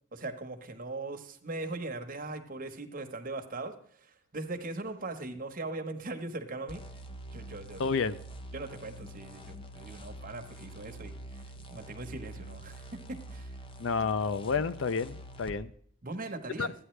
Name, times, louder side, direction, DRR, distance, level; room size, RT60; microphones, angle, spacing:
voice 1, 0.1-6.8 7.3-7.9 8.5-11.1 11.7-13.5 16.0-16.7, right 2 dB, 45° right, 5 dB, 1.2 m, -40 dB
sound 1, 6.7-15.6, right 1 dB, 25° left, 0.7 m, -46 dB
voice 2, 7.8-8.2 13.8-15.7 16.6-16.7, left 5 dB, 65° left, 14 dB, 0.5 m, -30 dB
13.5 x 9.6 x 3.2 m, 0.62 s
head